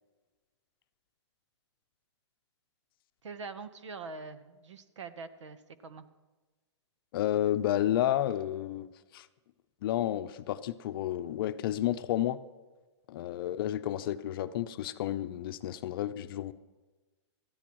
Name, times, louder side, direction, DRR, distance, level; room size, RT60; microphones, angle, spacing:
voice 1, 3.2-6.1, right 4 dB, 80° right, 12 dB, 1.1 m, -44 dB
voice 2, 7.1-9.3 9.8-12.4 13.1-16.5, left 12 dB, 50° left, 12 dB, 0.6 m, -31 dB
19.0 x 13.5 x 3.1 m, 1.2 s
hypercardioid pair, 140°, 15 cm